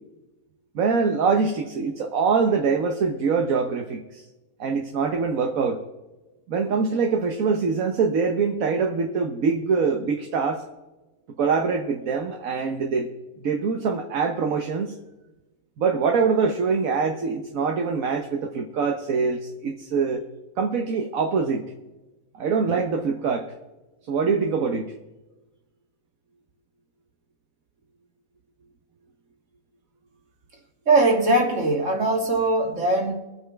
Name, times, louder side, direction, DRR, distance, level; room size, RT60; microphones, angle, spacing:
voice 1, 0.7-4.2 4.6-5.8 6.5-10.6 11.4-13.1 13.4-15.0 15.8-20.2 20.6-21.7 22.3-23.5 24.1-24.9, right 5 dB, 75° right, 4 dB, 1.4 m, -24 dB
voice 2, 30.9-33.1, right 2 dB, 60° right, 1 dB, 2.5 m, -20 dB
22.5 x 8.7 x 3.4 m, 1.1 s
omnidirectional pair, 1.4 m